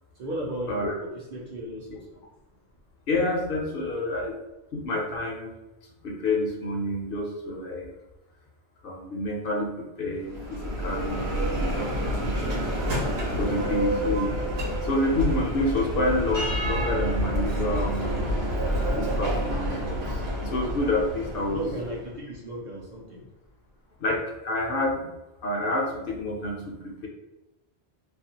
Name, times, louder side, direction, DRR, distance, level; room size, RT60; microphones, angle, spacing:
voice 1, 0.1-2.2 21.5-23.3, equal, 55° right, -4 dB, 0.6 m, -35 dB
voice 2, 3.1-4.3 4.7-5.5 6.0-7.9 8.8-11.5 11.8-12.8 13.4-14.4 14.8-18.3 18.7-21.6 24.0-25.1 25.4-27.1, left 2 dB, 65° left, 0 dB, 0.7 m, -28 dB
Bell, 10.2-22.0, equal, 75° right, 1.0 m, -28 dB
2.4 x 2.2 x 2.7 m, 0.96 s
omnidirectional pair, 1.1 m